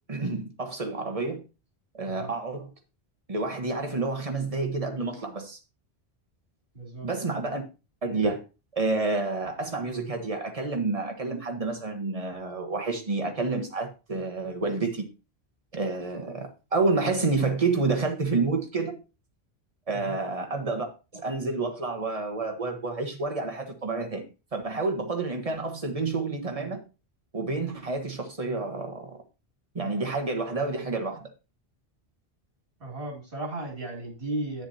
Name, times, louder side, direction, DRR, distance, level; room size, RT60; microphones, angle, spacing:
voice 1, 0.1-1.4 1.9-2.7 3.3-5.6 7.0-7.6 8.0-8.4 8.7-15.1 15.7-19.0 19.9-20.9 21.1-24.2 24.5-26.8 27.3-29.2 29.7-31.3, right 3 dB, 35° right, 1.3 m, -29 dB
voice 2, 6.7-7.1 19.9-20.2 32.8-34.7, right 2 dB, 60° right, 2.9 m, -35 dB
9.9 x 6.9 x 2.8 m
omnidirectional pair, 1.1 m